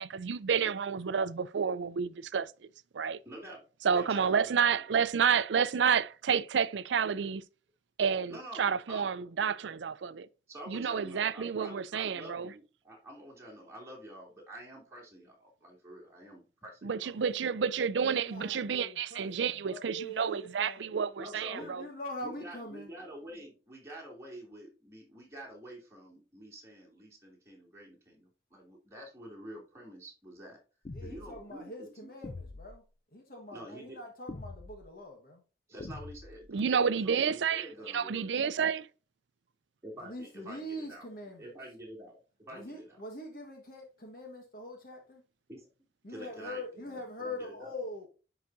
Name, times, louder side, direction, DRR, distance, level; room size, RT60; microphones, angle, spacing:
voice 1, 0.0-2.5 2.9-3.2 3.8-7.4 8.0-10.3 10.7-12.5 16.8-21.8 36.5-38.9, right 6 dB, 85° right, 0.5 m, -30 dB
voice 2, 3.2-3.6 3.9-4.8 8.3-9.1 10.5-17.2 21.2-21.7 22.2-30.6 31.0-32.3 33.5-34.0 35.7-36.7 37.0-38.3 39.8-41.1 41.4-43.0 45.5-45.7 46.1-47.8, right 1 dB, 15° right, 3.0 m, -48 dB
voice 3, 18.1-20.9 21.5-22.9 30.9-32.8 33.1-35.4 37.8-37.9 40.0-41.5 42.5-45.2 46.0-48.1, left 1 dB, 50° left, 1.5 m, -43 dB
sound 1, 30.8-31.4 32.2-32.8 34.3-34.8 35.8-36.4, left 2 dB, 35° left, 0.5 m, -44 dB
10.5 x 4.8 x 2.7 m
head